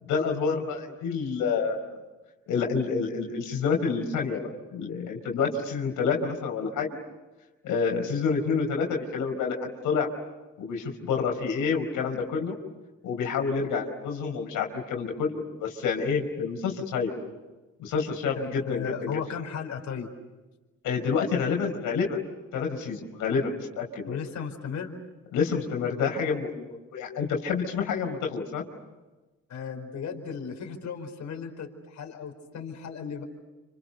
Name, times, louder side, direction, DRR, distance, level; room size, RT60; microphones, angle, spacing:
voice 1, 0.1-1.9 2.5-4.4 4.7-6.9 7.6-10.1 10.6-12.5 13.0-17.1 17.8-19.1 20.8-22.2 22.5-24.2 25.3-28.6, left 5 dB, 85° left, 1 dB, 4.8 m, -28 dB
voice 2, 18.3-20.1 24.1-24.9 29.5-33.2, left 6 dB, 65° left, 2 dB, 4.9 m, -35 dB
29.5 x 28.0 x 6.8 m, 1.2 s
cardioid pair, 90°, 30 cm